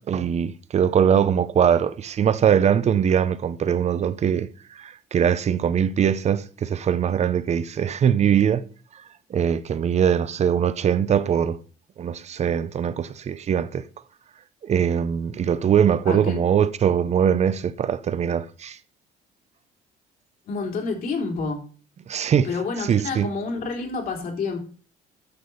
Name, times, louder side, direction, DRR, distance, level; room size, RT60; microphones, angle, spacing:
voice 1, 0.1-8.6 9.3-11.6 12.0-13.8 14.6-18.8 22.1-22.5 22.9-23.3, right 8 dB, 40° right, 0.7 m, -22 dB
voice 2, 16.0-16.4 20.5-21.6 22.4-24.6, left 4 dB, 60° left, 3.2 m, -28 dB
9.8 x 6.5 x 4.0 m
cardioid pair, 110°, 17 cm